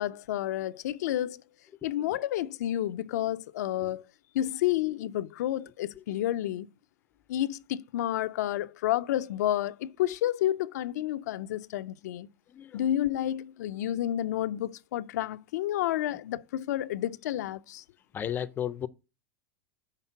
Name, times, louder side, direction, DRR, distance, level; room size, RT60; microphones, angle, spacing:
voice 1, 0.0-1.4 1.8-4.0 4.3-6.7 7.3-12.3 12.7-17.8, left 12 dB, 80° left, 0.4 m, -30 dB
voice 2, 18.1-18.9, left 9 dB, 20° left, 0.4 m, -34 dB
5.9 x 3.6 x 5.6 m
supercardioid pair, 130°, 9 cm